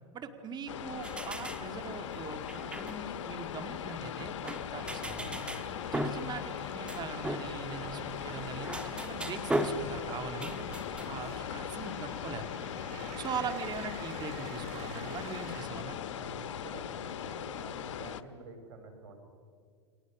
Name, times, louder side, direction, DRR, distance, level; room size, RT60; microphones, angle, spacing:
voice 1, 0.1-5.4 5.9-10.7 11.1-12.4 13.2-16.0, right 5 dB, 30° right, 7 dB, 2.2 m, -41 dB
sound 1, 0.7-18.2, left 9 dB, 85° left, 0.9 m, -39 dB
sound 2, 1.0-11.1, right 1 dB, 5° right, 1.4 m, -39 dB
sound 3, 4.7-15.7, right 12 dB, 45° right, 1.0 m, -49 dB
voice 2, 12.9-13.3 16.1-19.2, right 3 dB, 85° right, 4 dB, 5.7 m, -49 dB
29.5 x 23.0 x 6.2 m, 2.1 s
hypercardioid pair, 120°, 15 cm